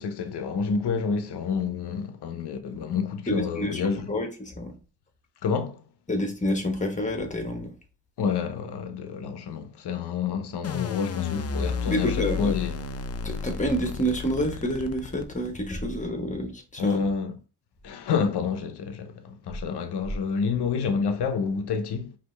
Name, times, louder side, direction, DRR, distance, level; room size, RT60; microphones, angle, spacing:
voice 1, 0.0-4.1 5.4-5.8 8.2-12.8 16.8-17.4 17.8-22.1, left 5 dB, 75° left, 0.8 m, -28 dB
voice 2, 3.3-4.8 6.1-7.7 11.9-12.5 13.2-17.0, equal, 20° left, 1.2 m, -28 dB
sound 1, 10.6-15.7, left 5 dB, 40° left, 0.6 m, -32 dB
5.1 x 2.8 x 3.3 m
cardioid pair, 90°, 40 cm